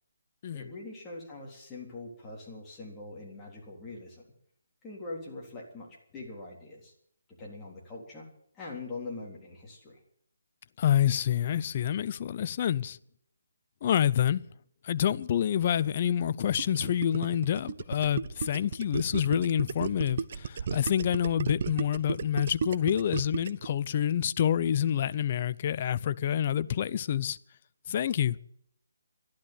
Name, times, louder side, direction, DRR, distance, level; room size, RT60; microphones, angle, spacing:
voice 1, 0.5-4.2 4.8-6.9 7.3-8.3 8.5-10.0, left 3 dB, 10° left, 3.6 m, -43 dB
voice 2, 10.8-13.0 13.8-14.4 14.8-27.4 27.9-28.4, left 10 dB, 35° left, 0.5 m, -27 dB
Gurgling, 16.6-23.7, right 6 dB, 45° right, 0.7 m, -34 dB
12.0 x 11.5 x 9.5 m
hypercardioid pair, 165°, 0 cm